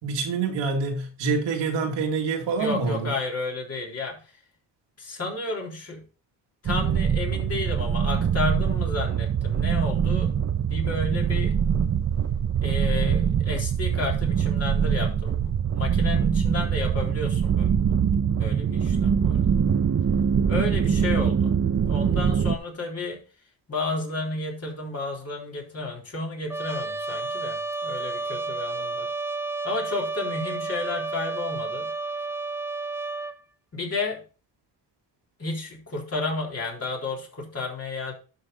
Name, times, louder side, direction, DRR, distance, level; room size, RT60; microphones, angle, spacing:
voice 1, 0.0-3.1, right 4 dB, 90° right, 1 dB, 2.6 m, -26 dB
voice 2, 2.6-4.4 5.0-6.0 6.6-10.3 10.6-11.6 12.6-19.6 20.5-21.6 21.9-23.2 23.7-29.1 29.6-31.9 33.7-34.2 35.4-38.1, left 3 dB, 35° left, -1 dB, 3.9 m, -32 dB
sound 1, 6.7-22.6, right 7 dB, 35° right, 0.9 m, -23 dB
Trumpet, 26.5-33.4, right 3 dB, 5° right, 0.4 m, -31 dB
11.5 x 5.9 x 4.1 m, 0.36 s
cardioid pair, 115°, 42 cm